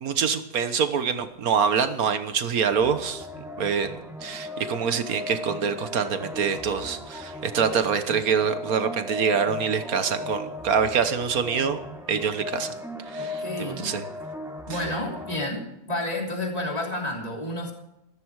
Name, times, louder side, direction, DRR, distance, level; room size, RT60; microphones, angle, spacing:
voice 1, 0.0-11.8 12.1-12.7 13.1-14.0 14.7-14.8, right 6 dB, 80° right, 10 dB, 1.6 m, -25 dB
sound 1, 2.7-15.5, left 2 dB, ahead, 1.2 m, -37 dB
voice 2, 13.2-13.9 14.7-17.7, left 1 dB, 25° left, 0 dB, 3.3 m, -30 dB
14.5 x 13.5 x 4.8 m, 0.86 s
omnidirectional pair, 1.5 m